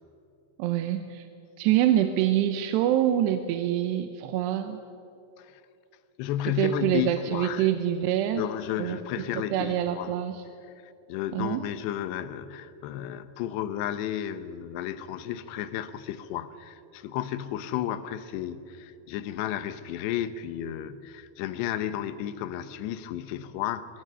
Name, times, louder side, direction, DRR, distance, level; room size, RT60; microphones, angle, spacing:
voice 1, 0.6-1.3 1.6-4.8 6.5-8.4 8.8-10.4 11.3-11.7, right 11 dB, 90° right, 3.0 m, -26 dB
voice 2, 6.2-7.7 8.4-10.1 10.8-23.9, left 11 dB, 85° left, 3.0 m, -33 dB
25.0 x 23.0 x 5.5 m
omnidirectional pair, 4.8 m